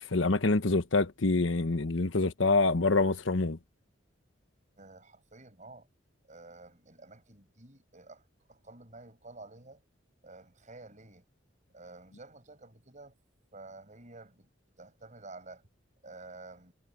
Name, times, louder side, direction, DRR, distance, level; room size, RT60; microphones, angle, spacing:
voice 1, 0.0-3.6, left 3 dB, 75° left, 1.1 m, -26 dB
voice 2, 4.8-5.9 6.3-9.8 10.2-11.3 11.7-13.1 13.5-14.5 14.8-15.7 16.0-16.7, right 2 dB, 40° right, 6.1 m, -51 dB
head